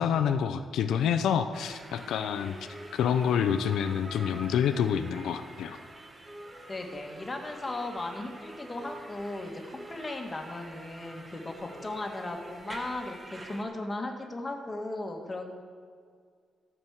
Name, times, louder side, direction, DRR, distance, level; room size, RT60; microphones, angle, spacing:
voice 1, 0.0-2.6 2.9-5.8, left 8 dB, 90° left, 8 dB, 0.5 m, -27 dB
sound 1, 1.5-13.6, right 1 dB, 20° right, 1.2 m, -46 dB
voice 2, 6.7-15.6, left 2 dB, 20° left, 2 dB, 1.5 m, -37 dB
13.0 x 6.1 x 7.2 m, 2.1 s
cardioid pair, 135°, 0 cm